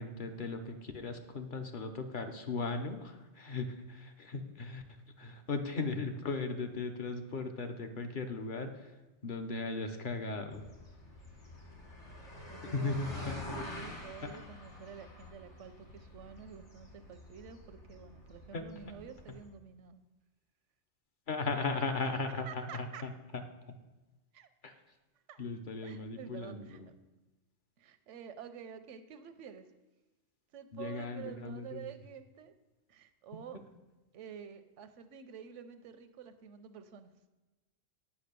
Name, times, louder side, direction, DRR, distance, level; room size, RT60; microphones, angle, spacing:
voice 1, 0.0-4.8 5.2-8.9 9.2-10.6 12.7-13.3 18.5-18.6 21.3-23.4 24.6-24.7 25.4-26.9 30.7-31.9, left 3 dB, 50° left, 6 dB, 0.9 m, -37 dB
sound 1, 10.5-19.5, left 2 dB, 80° left, 2.4 m, -48 dB
voice 2, 12.5-20.0 21.6-21.8 22.5-23.0 24.3-24.5 25.3-25.4 25.8-26.8 27.8-29.7 30.5-32.5 32.9-33.6 34.1-37.1, right 7 dB, 90° right, 10 dB, 1.0 m, -49 dB
8.5 x 5.7 x 6.7 m, 1.1 s
omnidirectional pair, 1.2 m